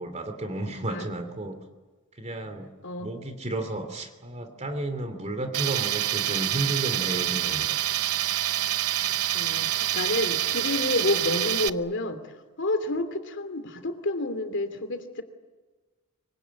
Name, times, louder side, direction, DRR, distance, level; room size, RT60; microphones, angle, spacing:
voice 1, 0.0-1.6 2.1-2.7 3.0-8.0 9.9-10.0, right 1 dB, 30° right, 6 dB, 2.8 m, -33 dB
Tools, 5.5-11.7, right 13 dB, 80° right, 0.8 m, -27 dB
voice 2, 9.3-12.3 12.6-15.2, left 2 dB, 55° left, 9 dB, 2.9 m, -29 dB
25.5 x 24.5 x 9.5 m, 1.3 s
head